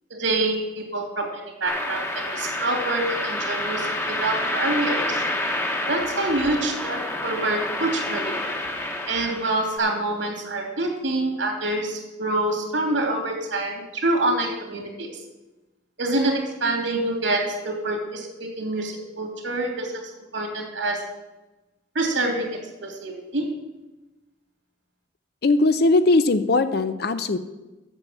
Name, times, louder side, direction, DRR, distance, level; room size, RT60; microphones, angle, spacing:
voice 1, 0.1-5.2 5.9-8.4 9.1-15.2 16.0-21.0 21.9-23.4, right 2 dB, 80° right, 2 dB, 2.8 m, -26 dB
sound 1, 1.7-9.8, left 1 dB, 15° left, 1.1 m, -28 dB
voice 2, 25.4-27.4, left 2 dB, 55° left, 11 dB, 0.5 m, -19 dB
9.0 x 6.9 x 7.2 m, 1.1 s
head